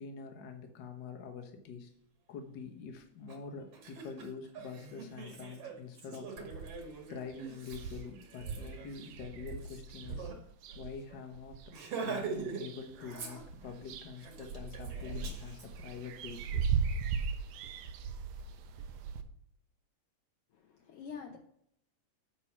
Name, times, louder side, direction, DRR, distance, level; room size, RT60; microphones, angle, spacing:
voice 1, 0.0-1.9 2.3-6.7 7.1-10.3 10.7-11.6 12.0-16.8, left 5 dB, 65° left, 4 dB, 1.0 m, -45 dB
Laughter, 3.3-3.4 3.7-10.4 10.7-10.8 11.1-11.3 11.7-12.6 12.9-13.8 14.2-15.7, right 5 dB, 50° right, 2.4 m, -43 dB
sound 1, 6.4-7.0 7.3-7.4 7.6-11.7 12.2-13.1 13.4-19.2, right 6 dB, 75° right, 1.5 m, -38 dB
voice 2, 20.5-21.4, left 6 dB, 90° left, 2 dB, 1.3 m, -46 dB
8.5 x 4.6 x 5.9 m, 0.71 s
omnidirectional pair, 3.7 m